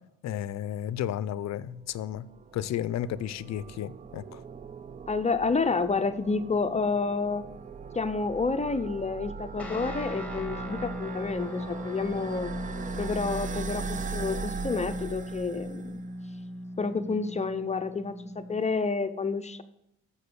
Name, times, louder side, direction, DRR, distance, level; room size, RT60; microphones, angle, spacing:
voice 1, 0.2-2.2 2.5-4.4, left 11 dB, 65° left, 0.5 m, -33 dB
sound 1, 1.9-16.1, right 6 dB, 25° right, 0.5 m, -40 dB
voice 2, 5.1-7.4 7.9-12.6 13.0-16.0 16.8-19.6, left 4 dB, 20° left, 0.6 m, -29 dB
Guitar, 9.6-18.7, equal, 5° left, 1.7 m, -38 dB
7.1 x 6.6 x 6.8 m
cardioid pair, 90°, 30 cm